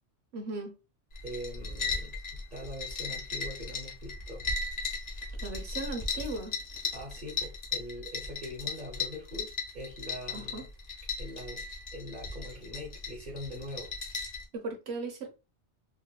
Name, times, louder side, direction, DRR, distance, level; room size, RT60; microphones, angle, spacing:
voice 1, 0.3-0.7 5.4-6.5 10.3-10.6 14.5-15.3, right 3 dB, 65° right, 1.1 m, -37 dB
sound 1, 1.1-14.4, left 4 dB, 40° left, 0.8 m, -37 dB
voice 2, 1.2-4.5 6.9-10.7 11.2-11.6 11.9-13.9, left 1 dB, 45° right, 1.0 m, -42 dB
3.8 x 2.4 x 2.3 m
omnidirectional pair, 1.2 m